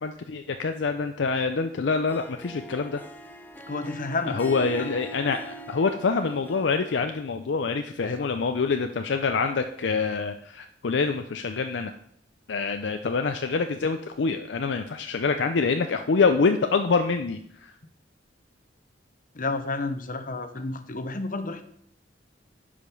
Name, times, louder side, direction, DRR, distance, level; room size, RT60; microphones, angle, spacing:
voice 1, 0.0-3.0 4.3-11.9 12.5-17.7, left 4 dB, 70° left, 7 dB, 0.5 m, -26 dB
Harp, 1.9-7.2, right 2 dB, 10° left, 0.7 m, -42 dB
voice 2, 3.7-4.4 4.8-4.9 8.0-8.3 19.3-21.6, left 3 dB, 45° left, 9 dB, 0.9 m, -31 dB
10.0 x 5.1 x 5.3 m, 0.69 s
head